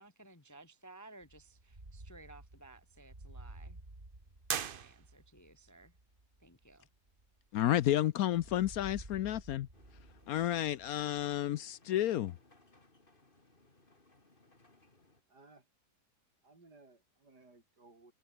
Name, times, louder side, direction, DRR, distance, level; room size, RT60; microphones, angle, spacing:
voice 1, 0.0-3.8 4.5-6.0 6.4-6.9, right 2 dB, 15° left, 0.9 m, -57 dB
sound 1, 1.2-7.9 8.3-11.5, right 2 dB, 30° right, 3.9 m, -53 dB
sound 2, 4.4-5.5, right 8 dB, 50° right, 0.6 m, -39 dB
voice 2, 7.5-9.7 10.3-12.4, left 12 dB, 70° left, 1.0 m, -31 dB
sound 3, 9.7-15.2, left 2 dB, 30° left, 3.6 m, -65 dB
voice 3, 15.3-15.7 16.4-18.1, right 3 dB, 80° right, 5.5 m, -60 dB
omnidirectional pair, 1.8 m